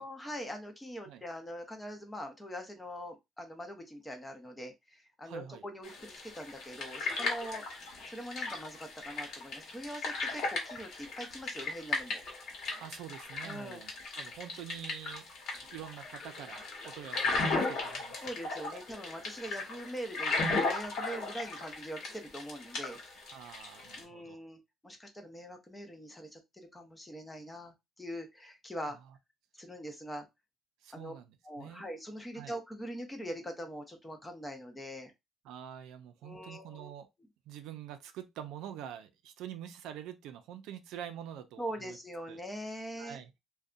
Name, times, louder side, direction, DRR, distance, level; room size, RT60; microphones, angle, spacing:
voice 1, 0.0-12.2 13.4-13.8 18.2-23.3 24.0-29.0 29.5-30.3 30.9-31.1 31.4-35.1 36.2-36.9 41.6-43.2, equal, 10° left, 0.5 m, -43 dB
voice 2, 5.2-5.6 12.8-13.9 14.2-18.3 18.7-18.8 23.3-24.4 30.8-31.8 32.4-32.5 35.4-37.1 37.5-42.0 42.3-42.4 43.0-43.3, right 10 dB, 80° right, 0.4 m, -46 dB
sound 1, 5.8-24.0, left 3 dB, 55° left, 1.0 m, -36 dB
2.6 x 2.2 x 2.4 m
cardioid pair, 165°, 0 cm